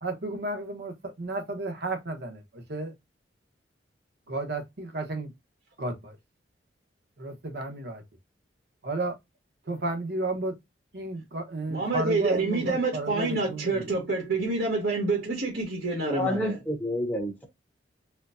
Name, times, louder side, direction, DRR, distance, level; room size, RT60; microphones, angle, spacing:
voice 1, 0.0-2.9 4.3-5.3 5.8-6.2 7.2-8.0 8.8-9.1 9.7-10.5 10.9-13.8, right 2 dB, 60° right, 1.0 m, -32 dB
voice 2, 11.7-16.6, right 3 dB, 80° right, 1.5 m, -27 dB
voice 3, 16.1-17.5, left 1 dB, 10° left, 1.0 m, -29 dB
4.3 x 2.3 x 2.5 m
head